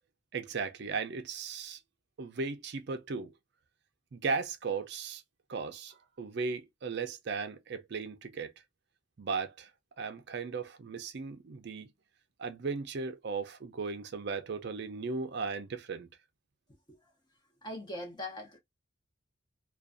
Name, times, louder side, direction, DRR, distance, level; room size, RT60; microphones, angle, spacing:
voice 1, 0.3-1.8 2.2-3.3 4.1-5.2 5.5-8.5 9.2-9.7 10.0-11.9 12.4-16.1, right 4 dB, 55° right, 0.4 m, -36 dB
voice 2, 17.6-18.6, left 1 dB, 20° left, 0.6 m, -40 dB
2.5 x 2.2 x 2.4 m
head